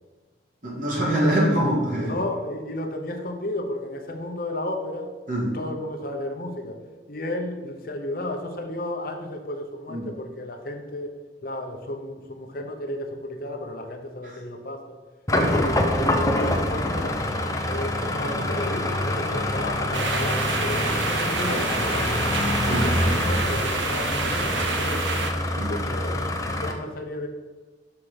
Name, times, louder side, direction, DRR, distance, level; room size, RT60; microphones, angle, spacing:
voice 1, 0.6-2.1 5.3-5.6 9.9-10.0 14.2-14.3 15.4-15.5 22.6-22.9 25.6-25.7, equal, 45° right, -4 dB, 2.2 m, -24 dB
voice 2, 2.0-5.1 5.5-6.8 7.1-11.2 11.4-15.0 15.5-17.2 17.6-22.2 22.7-25.1 25.7-27.3, left 1 dB, 50° left, 5 dB, 0.7 m, -33 dB
sound 1, 15.3-26.7, left 1 dB, 20° left, 0.6 m, -25 dB
sound 2, 19.9-25.3, right 4 dB, 85° right, 0.8 m, -28 dB
5.9 x 5.8 x 5.0 m, 1.3 s
head